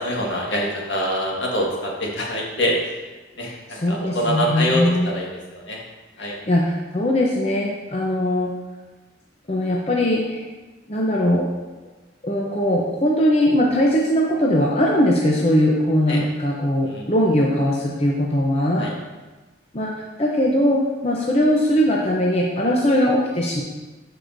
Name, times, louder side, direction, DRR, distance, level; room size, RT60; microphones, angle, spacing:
voice 1, 0.0-2.7 3.4-5.8 6.2-6.3 16.1-16.2 16.9-17.0 18.8-18.9, equal, 70° left, -2 dB, 1.6 m, -25 dB
voice 2, 3.4-5.1 6.2-8.5 9.5-10.4 10.9-11.4 12.2-18.9 19.7-19.9 20.2-23.6, equal, 30° left, -3 dB, 0.7 m, -20 dB
12.0 x 4.8 x 2.6 m, 1.2 s
head